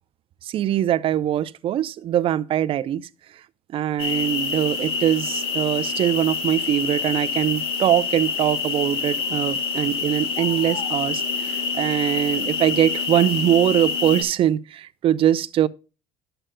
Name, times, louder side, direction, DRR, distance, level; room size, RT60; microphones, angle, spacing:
voice 1, 0.4-3.4 3.7-15.7, right 11 dB, 50° right, 0.5 m, -22 dB
sound 1, 4.0-14.2, left 5 dB, 55° left, 1.9 m, -27 dB
11.0 x 7.8 x 2.2 m
cardioid pair, 110°, 12 cm